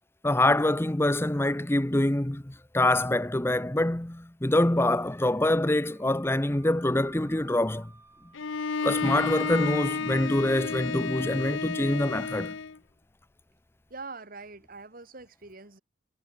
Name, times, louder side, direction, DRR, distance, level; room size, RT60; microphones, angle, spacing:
voice 1, 0.2-7.9 8.8-12.5, left 1 dB, 10° left, 0.8 m, -25 dB
Wind instrument woodwind instrument, 5.6-9.3, right 3 dB, 15° right, 5.5 m, -58 dB
Bowed string instrument, 8.3-12.8, left 5 dB, 80° left, 0.8 m, -31 dB
voice 2, 13.9-15.8, right 3 dB, 45° right, 2.4 m, -43 dB
head